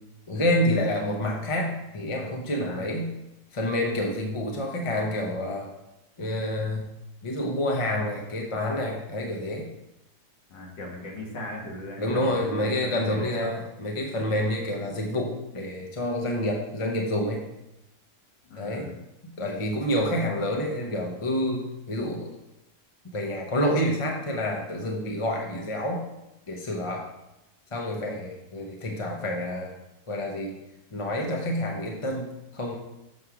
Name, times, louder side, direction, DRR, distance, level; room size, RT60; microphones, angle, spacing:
voice 1, 0.3-3.1 3.5-5.7 6.2-6.9 7.2-9.7 12.0-17.4 18.6-18.9 19.2-22.3 23.1-26.0 26.5-27.1 27.7-29.7 30.1-30.6 30.9-32.8, left 1 dB, 30° left, 0 dB, 0.6 m, -28 dB
voice 2, 10.5-13.5 18.5-19.0, left 1 dB, 90° left, -1 dB, 2.4 m, -38 dB
7.5 x 4.8 x 5.9 m, 0.93 s
omnidirectional pair, 1.9 m